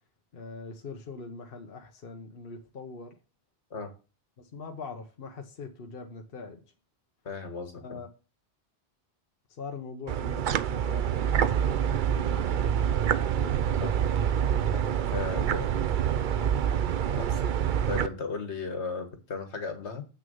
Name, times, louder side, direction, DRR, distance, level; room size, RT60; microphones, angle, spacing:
voice 1, 0.3-3.2 4.4-6.6 7.8-8.1 9.5-11.8 12.1-14.2 15.3-16.8, left 4 dB, 55° left, 1.1 m, -43 dB
voice 2, 7.3-8.0 13.8-13.9 14.7-14.8 15.1-15.6 17.1-17.4 17.9-20.1, left 4 dB, 75° left, 1.8 m, -35 dB
sound 1, 10.1-18.1, right 9 dB, 55° right, 0.6 m, -26 dB
8.2 x 6.4 x 5.5 m
omnidirectional pair, 1.2 m